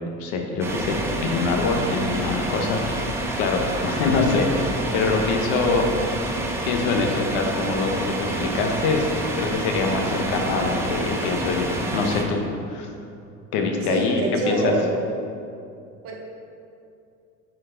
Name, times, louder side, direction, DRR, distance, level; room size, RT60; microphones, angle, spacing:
voice 1, 0.2-5.9 6.6-9.1 9.4-12.4 12.7-12.9 13.5-14.7, left 4 dB, 80° left, 2 dB, 1.0 m, -24 dB
sound 1, 0.6-12.2, right 2 dB, 10° right, 0.3 m, -28 dB
voice 2, 13.8-15.0 16.0-16.2, right 2 dB, 45° right, 0 dB, 1.1 m, -25 dB
8.7 x 4.6 x 3.8 m, 2.5 s
cardioid pair, 175°, 30 cm